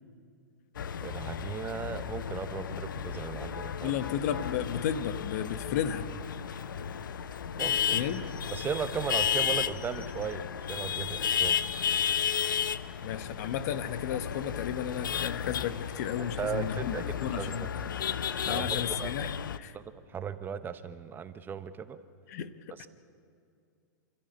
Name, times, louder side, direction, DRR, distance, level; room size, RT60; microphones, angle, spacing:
sound 1, 0.8-19.6, left 8 dB, 85° left, 0.8 m, -33 dB
voice 1, 1.0-3.9 7.6-8.0 8.5-11.6 16.2-17.7 18.5-19.3 19.7-19.8 20.1-22.0 22.8-22.9, right 7 dB, 20° right, 10 dB, 1.0 m, -37 dB
voice 2, 3.8-6.1 7.9-8.2 13.0-17.0 17.2-17.7 18.4-19.7 22.3-22.9, left 9 dB, 55° left, 11 dB, 1.2 m, -33 dB
28.0 x 14.0 x 9.2 m, 2.4 s
hypercardioid pair, 125°, 11 cm